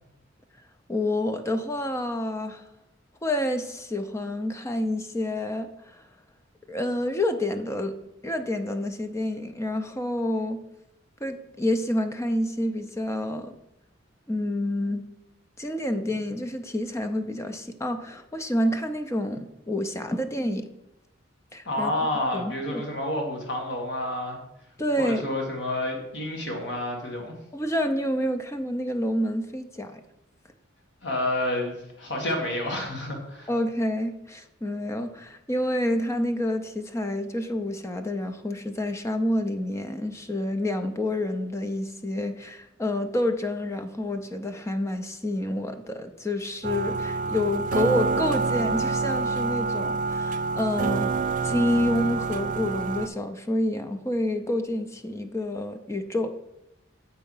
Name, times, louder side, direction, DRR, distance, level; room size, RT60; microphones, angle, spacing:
voice 1, 0.9-2.6 3.2-5.7 5.9-6.0 6.7-7.9 8.2-10.6 11.2-13.5 14.3-15.0 15.6-20.7 21.5-21.9 22.3-22.8 24.8-25.2 27.5-30.0 33.5-51.1 51.4-56.3, left 1 dB, 15° left, 8 dB, 0.5 m, -28 dB
voice 2, 21.7-24.4 25.0-27.3 31.0-33.5, left 1 dB, 65° left, 0 dB, 1.9 m, -29 dB
sound 1, 46.6-53.1, right 4 dB, 45° right, 0.4 m, -27 dB
7.8 x 4.6 x 5.5 m, 0.86 s
head